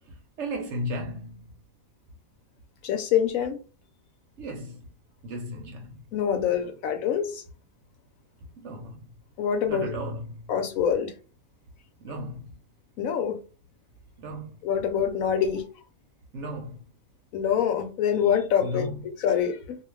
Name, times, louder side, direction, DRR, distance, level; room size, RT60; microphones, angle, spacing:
voice 1, 0.4-1.4 4.4-4.8 5.2-6.0 8.6-9.0 9.7-10.3 12.0-12.5 14.2-14.5 16.3-16.8 18.6-19.0, equal, 60° right, 0.9 m, -34 dB
voice 2, 2.8-3.6 6.1-7.3 9.4-9.9 10.5-11.1 13.0-13.4 14.6-15.6 17.3-18.9 19.2-19.8, left 8 dB, 75° left, 1.0 m, -25 dB
2.4 x 2.4 x 3.2 m
omnidirectional pair, 1.5 m